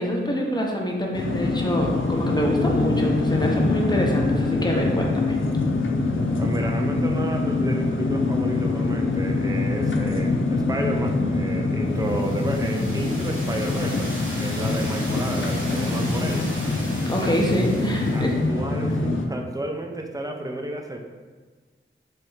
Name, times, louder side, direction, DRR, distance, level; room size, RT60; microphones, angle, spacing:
voice 1, 0.0-5.3 17.0-18.4, equal, 20° left, -1 dB, 0.7 m, -25 dB
sound 1, 1.1-19.3, left 3 dB, 70° left, 0.5 m, -24 dB
voice 2, 6.4-14.1 14.4-16.5 17.2-17.4 18.1-21.0, right 1 dB, 15° right, 2 dB, 0.5 m, -31 dB
sound 2, 11.9-18.4, right 1 dB, 70° right, 1.3 m, -37 dB
3.6 x 3.2 x 3.1 m, 1.4 s
wide cardioid pair, 55°, 21 cm